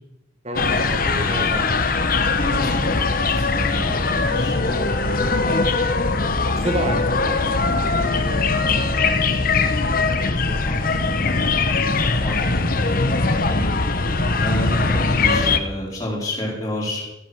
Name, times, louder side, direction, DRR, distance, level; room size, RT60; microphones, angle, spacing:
voice 1, 0.4-1.8 3.8-4.4 6.5-9.2 10.4-10.6, right 1 dB, 30° right, 6 dB, 1.6 m, -32 dB
sound 1, 0.5-15.6, left 3 dB, 45° left, 1.0 m, -21 dB
voice 2, 2.4-4.8 7.5-7.7 10.6-11.0 12.2-12.9 13.5-13.6 14.4-17.0, left 1 dB, 20° left, -5 dB, 4.8 m, -29 dB
14.5 x 10.5 x 6.3 m, 0.97 s
head